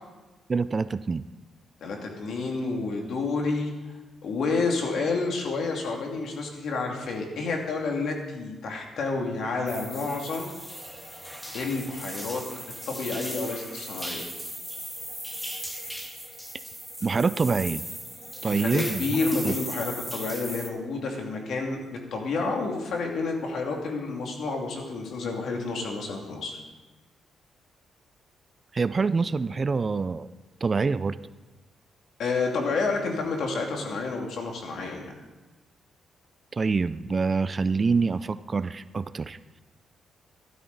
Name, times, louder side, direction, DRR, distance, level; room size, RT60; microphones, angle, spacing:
voice 1, 0.5-1.2 17.0-17.8 18.4-19.0 19.4-19.5 28.7-30.3 30.6-31.2 36.5-39.6, right 4 dB, 30° right, 15 dB, 0.4 m, -26 dB
voice 2, 1.8-3.7 4.2-10.5 11.5-12.4 12.9-14.2 18.4-26.6 32.2-35.1, left 3 dB, 70° left, 1 dB, 2.5 m, -29 dB
sound 1, 9.7-20.7, equal, ahead, 1.6 m, -37 dB
13.0 x 12.5 x 4.0 m, 1.2 s
cardioid pair, 105°, 0 cm